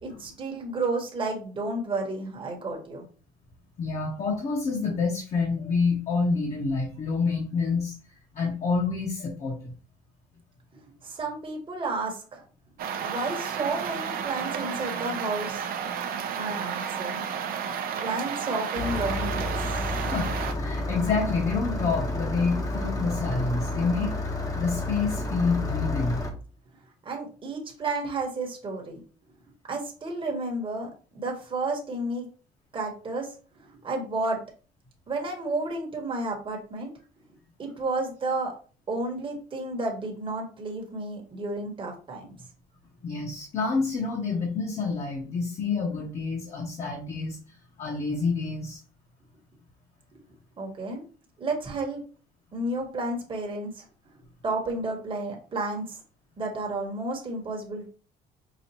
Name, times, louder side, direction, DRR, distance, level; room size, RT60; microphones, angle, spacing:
voice 1, 0.0-3.0 11.0-12.4 13.0-15.7 16.4-17.2 18.0-19.6 27.0-29.0 29.7-30.9 31.1-32.3 32.7-33.3 33.8-34.4 35.1-36.9 37.6-38.5 38.9-42.3 50.6-51.0 51.4-52.0 52.5-53.8 54.4-56.0 56.4-57.9, right 2 dB, 30° right, 0 dB, 1.1 m, -31 dB
voice 2, 3.8-7.9 8.3-9.7 20.1-20.3 20.6-24.1 24.5-26.2 43.0-47.4 47.8-48.8, left 4 dB, 40° left, -1 dB, 1.0 m, -28 dB
sound 1, 12.8-20.5, right 7 dB, 60° right, 0.6 m, -32 dB
Engine starting, 18.8-26.3, left 2 dB, 20° left, 0.8 m, -30 dB
5.0 x 2.4 x 2.8 m, 0.38 s
cardioid pair, 110°, 17 cm